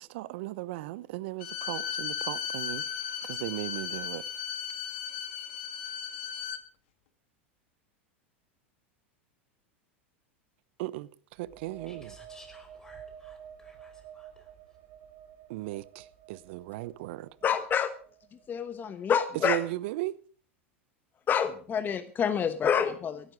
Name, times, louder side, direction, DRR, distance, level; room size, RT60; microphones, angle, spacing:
voice 1, 0.0-2.8 3.2-4.2 10.8-12.1 15.5-17.3 19.4-20.2, right 17 dB, 65° right, 0.8 m, -36 dB
Bowed string instrument, 1.4-6.6, left 8 dB, 65° left, 1.9 m, -36 dB
sound 1, 11.3-18.9, right 9 dB, 50° right, 3.1 m, -51 dB
voice 2, 11.9-14.5, left 2 dB, 10° left, 5.0 m, -56 dB
voice 3, 17.4-17.9 18.3-19.6 21.3-23.3, left 7 dB, 30° left, 1.1 m, -28 dB
17.0 x 11.5 x 5.0 m
hypercardioid pair, 100°, 7 cm